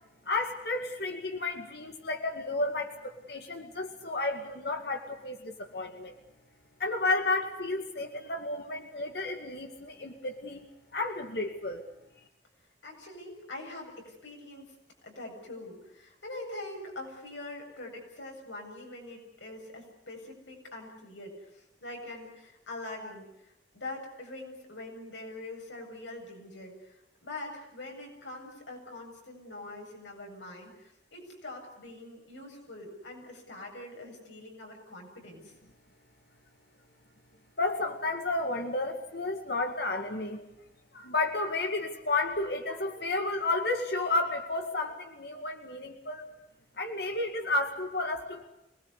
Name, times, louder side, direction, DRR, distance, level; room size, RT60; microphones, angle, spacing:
voice 1, 0.3-6.1 6.8-10.7 10.9-11.8 37.6-40.4 40.9-46.2 46.8-48.5, left 2 dB, 65° left, 4 dB, 2.1 m, -32 dB
voice 2, 12.8-14.7 15.0-35.5, left 2 dB, 90° left, 1 dB, 7.7 m, -44 dB
25.5 x 19.5 x 8.3 m, 0.86 s
head